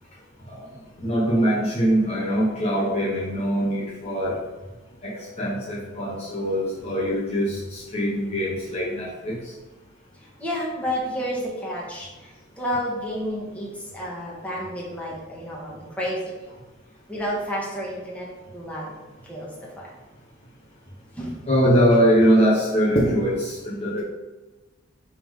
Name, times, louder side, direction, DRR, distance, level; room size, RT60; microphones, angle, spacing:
voice 1, 1.0-4.4 5.0-9.4 21.5-24.0, equal, 30° left, -6 dB, 1.0 m, -22 dB
voice 2, 10.2-16.3 17.1-18.9 19.2-19.9 21.1-21.4, equal, 5° left, -5 dB, 1.6 m, -31 dB
8.5 x 3.6 x 3.7 m, 1.2 s
head